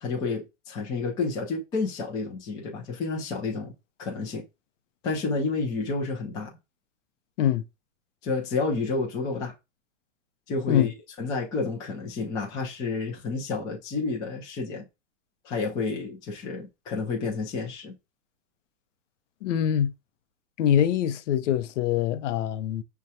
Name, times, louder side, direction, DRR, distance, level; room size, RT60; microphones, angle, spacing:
voice 1, 0.0-3.7 4.0-4.4 5.0-6.5 8.2-9.5 10.5-10.9 11.2-14.9 15.4-18.0, left 4 dB, 10° left, 0.4 m, -30 dB
voice 2, 19.4-19.9 20.6-22.8, left 10 dB, 70° left, 0.6 m, -24 dB
6.1 x 2.2 x 2.7 m
supercardioid pair, 155°, 38 cm